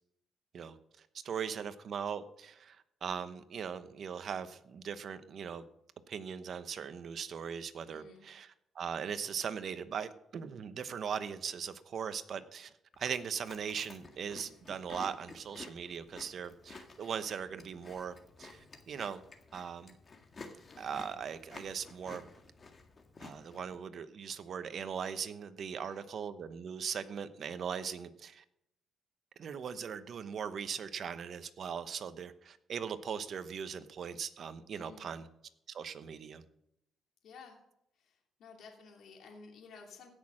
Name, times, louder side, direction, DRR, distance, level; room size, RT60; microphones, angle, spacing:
voice 1, 0.5-5.7 6.1-19.2 19.5-20.0 20.8-22.3 23.2-28.4 29.4-35.3 35.7-36.4, right 7 dB, 55° right, 12 dB, 1.0 m, -40 dB
voice 2, 7.9-8.2 13.8-14.0 25.7-26.0 34.7-35.1 37.2-37.6 37.9-40.1, left 5 dB, 70° left, 1 dB, 2.8 m, -54 dB
Chewing mastication, 12.9-23.8, left 3 dB, 35° left, 1.8 m, -52 dB
16.0 x 6.4 x 6.2 m, 0.79 s
cardioid pair, 90°, 0 cm